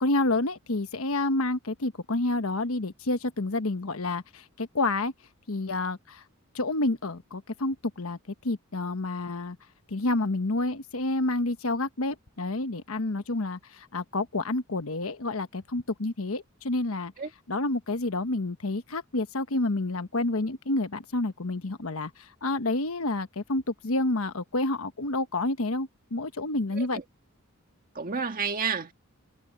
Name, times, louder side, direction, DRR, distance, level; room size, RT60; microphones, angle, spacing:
voice 1, 0.0-5.1 5.5-6.2 6.5-8.2 8.4-9.6 9.9-17.1 17.5-27.0, left 2 dB, 75° left, 1.2 m, -29 dB
voice 2, 28.0-28.9, right 5 dB, 40° right, 1.9 m, -30 dB
head